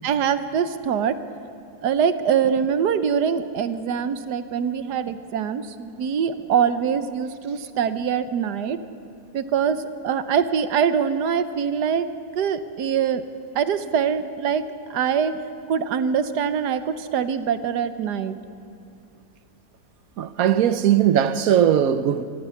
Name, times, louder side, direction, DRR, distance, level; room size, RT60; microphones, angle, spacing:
voice 1, 0.0-1.1 1.8-8.8 9.3-12.1 12.3-13.2 13.5-14.6 14.9-15.3 15.7-18.4, right 7 dB, 85° right, 1.4 m, -23 dB
voice 2, 20.2-22.2, right 10 dB, 65° right, 1.1 m, -19 dB
24.0 x 15.5 x 7.1 m
omnidirectional pair, 1.7 m